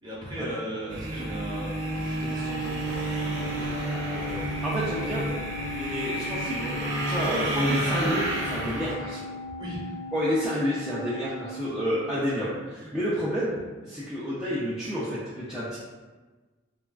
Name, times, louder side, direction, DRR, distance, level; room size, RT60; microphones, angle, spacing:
voice 1, 0.0-3.0 3.3-4.7 5.6-6.0 9.6-9.8, right 1 dB, 20° right, -7 dB, 0.9 m, -38 dB
sound 1, 0.9-8.9, right 1 dB, 70° right, 0.6 m, -30 dB
Organ, 1.2-12.4, left 2 dB, 45° left, 0.7 m, -39 dB
voice 2, 4.6-5.2 5.7-6.8 7.1-9.2 10.1-15.8, equal, 5° right, -12 dB, 0.4 m, -29 dB
3.3 x 2.3 x 2.3 m, 1.3 s
head